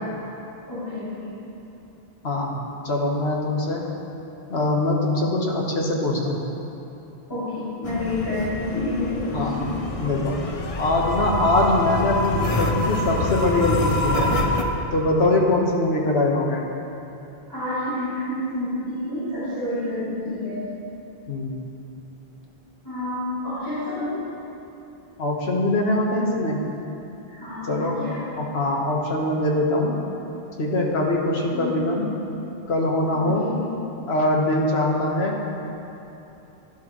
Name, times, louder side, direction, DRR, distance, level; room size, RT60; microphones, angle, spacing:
voice 1, 0.7-1.3 7.3-9.7 17.5-20.6 22.8-24.2 27.3-28.2 31.5-31.8 33.1-33.7, left 2 dB, 20° left, -15 dB, 2.9 m, -29 dB
voice 2, 2.2-2.6 2.8-3.8 4.5-6.4 9.3-9.5 10.0-10.4 10.8-14.3 14.9-16.6 21.3-21.6 25.2-26.6 27.7-28.0 28.4-29.9 30.6-32.1 32.7-33.4 34.1-35.3, left 2 dB, 80° left, -1 dB, 1.5 m, -22 dB
sound 1, 7.8-14.6, left 1 dB, 40° left, 0.7 m, -26 dB
12.0 x 11.5 x 3.1 m, 2.9 s
omnidirectional pair, 1.1 m